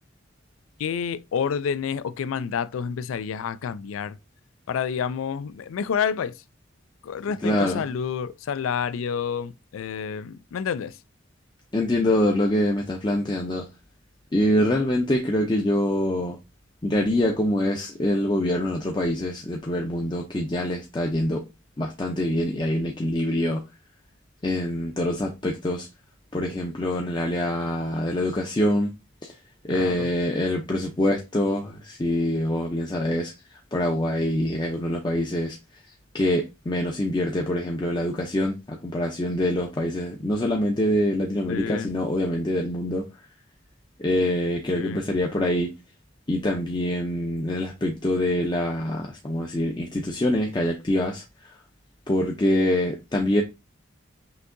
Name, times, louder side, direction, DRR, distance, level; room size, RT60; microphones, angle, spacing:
voice 1, 0.8-4.2 4.7-6.3 7.0-10.9 29.7-30.1 41.5-41.9 44.7-45.0, left 7 dB, 90° left, 0.3 m, -29 dB
voice 2, 7.4-7.9 11.7-13.7 14.3-16.4 16.8-21.4 21.8-23.6 24.4-25.9 26.3-28.9 29.2-29.3 29.6-33.3 33.7-35.6 36.1-43.1 44.0-45.7 46.3-51.5 52.1-53.4, left 1 dB, 20° left, 0.5 m, -25 dB
5.7 x 2.7 x 2.6 m
head